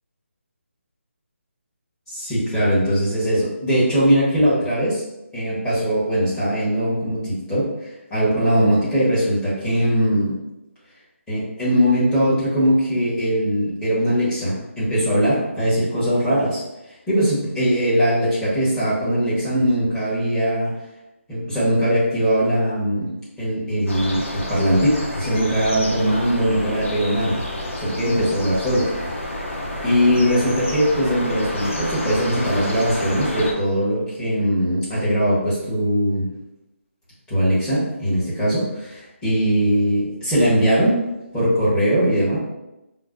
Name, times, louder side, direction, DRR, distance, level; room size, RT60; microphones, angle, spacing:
voice 1, 2.1-5.0 5.3-10.4 11.3-16.6 17.1-20.7 21.3-23.1 23.4-27.4 27.8-28.9 29.2-29.6 29.8-36.3 37.3-41.0 41.3-42.4, equal, 5° left, -11 dB, 1.0 m, -20 dB
sound 1, 23.9-33.5, left 1 dB, 65° left, 0.8 m, -29 dB
5.1 x 2.1 x 2.4 m, 0.95 s
figure-of-eight pair, 160°, 7 cm